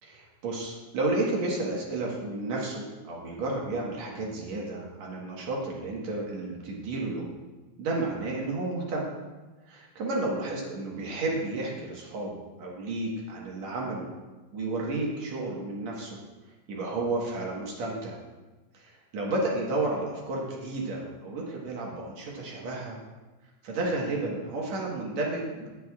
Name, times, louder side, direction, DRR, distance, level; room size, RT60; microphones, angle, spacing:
voice 1, 0.0-7.3 7.8-9.1 9.7-14.1 14.5-16.2 16.7-18.2 18.7-23.0 23.6-25.7, right 2 dB, 65° right, -2 dB, 2.5 m, -32 dB
18.0 x 6.3 x 2.4 m, 1.2 s
omnidirectional pair, 3.4 m